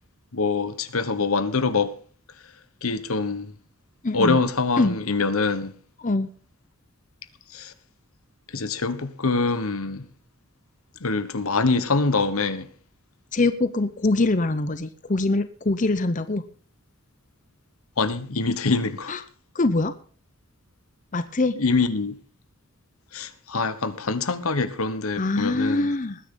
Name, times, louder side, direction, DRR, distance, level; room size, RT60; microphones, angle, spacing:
voice 1, 0.3-1.9 2.8-3.5 4.1-5.7 7.5-7.7 8.5-10.0 11.0-12.7 18.0-19.2 21.6-22.2 23.1-25.9, left 3 dB, 80° left, 1.2 m, -24 dB
voice 2, 4.0-4.4 4.8-5.0 6.0-6.3 13.3-16.4 19.1-19.2 19.5-19.9 21.1-21.6 25.1-26.2, left 2 dB, 35° left, 0.7 m, -23 dB
20.0 x 9.9 x 3.8 m
head